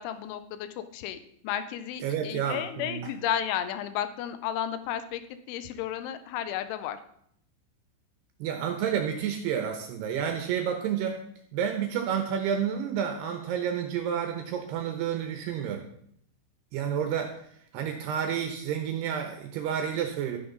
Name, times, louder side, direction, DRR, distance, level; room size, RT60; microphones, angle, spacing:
voice 1, 0.0-5.2 5.5-7.0, left 10 dB, 85° left, 11 dB, 3.2 m, -33 dB
voice 2, 2.0-3.0 8.4-11.2 11.5-15.8 16.7-17.4 17.7-20.4, right 8 dB, 75° right, 4 dB, 2.8 m, -30 dB
13.0 x 10.0 x 4.0 m, 0.68 s
omnidirectional pair, 5.4 m